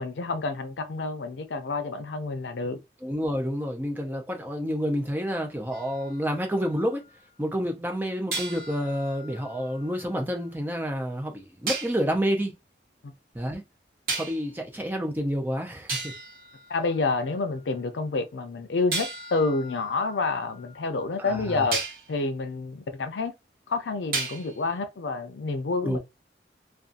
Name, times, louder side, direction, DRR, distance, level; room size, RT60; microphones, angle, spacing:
voice 1, 0.0-2.8 13.0-13.1 16.7-21.8 22.1-23.3 23.7-26.0, left 3 dB, 90° left, 0.5 m, -28 dB
voice 2, 3.0-7.0 7.4-12.5 13.3-13.6 14.2-16.1 21.2-21.7 25.8-26.0, equal, 10° right, 0.4 m, -29 dB
sound 1, 5.7-7.1 8.3-10.4 11.7-12.1 14.1-14.6 15.4-15.5 15.9-17.5 18.9-21.1 21.7-22.1 24.1-24.7, right 3 dB, 50° right, 1.0 m, -35 dB
2.5 x 2.3 x 2.4 m
head